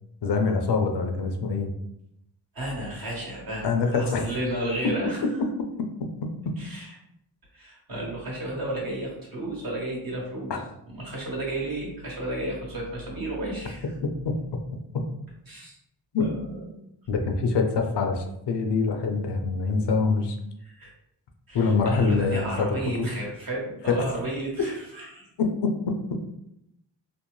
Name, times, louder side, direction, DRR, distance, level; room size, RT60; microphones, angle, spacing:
voice 1, 0.2-1.7 3.6-4.2 10.5-10.6 16.1-16.3 17.1-20.4 21.5-22.7 23.0-23.1 25.4-26.0, left 4 dB, 65° left, 4 dB, 0.6 m, -24 dB
voice 2, 2.5-5.2 6.6-6.9 7.5-10.5 10.9-13.8 15.5-15.8 16.2-16.7 20.6-20.9 21.5-25.3, right 1 dB, 50° right, -3 dB, 1.2 m, -33 dB
2.6 x 2.0 x 3.0 m, 0.80 s
cardioid pair, 60°, 44 cm